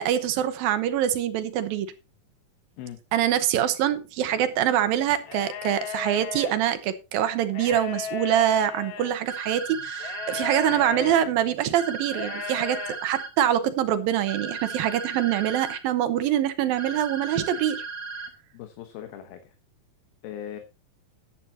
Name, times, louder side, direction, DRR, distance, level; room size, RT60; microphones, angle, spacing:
voice 1, 0.0-1.9 3.1-17.8, right 11 dB, 75° right, 11 dB, 2.7 m, -24 dB
sound 1, 5.2-6.5 7.5-9.2 10.0-11.3 12.1-13.0, left 8 dB, 70° left, 2.8 m, -35 dB
sound 2, 9.3-10.8 11.8-13.3 14.3-15.8 16.8-18.3, right 4 dB, 45° right, 2.8 m, -36 dB
voice 2, 18.5-19.6 20.2-20.6, left 10 dB, 90° left, 6 dB, 3.1 m, -39 dB
14.0 x 11.0 x 2.9 m, 0.29 s
omnidirectional pair, 4.2 m